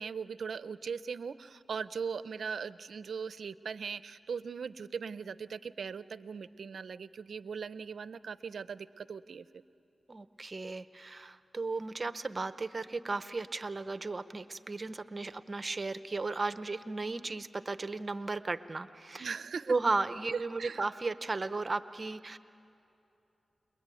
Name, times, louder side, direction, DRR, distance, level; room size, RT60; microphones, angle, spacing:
voice 1, 0.0-9.4 19.2-19.7 20.6-20.9, right 6 dB, 75° right, 15 dB, 0.6 m, -39 dB
voice 2, 10.1-19.3 19.7-22.4, right 3 dB, 40° right, 12 dB, 0.9 m, -35 dB
30.0 x 21.5 x 9.2 m, 2.8 s
cardioid pair, 50°, 0 cm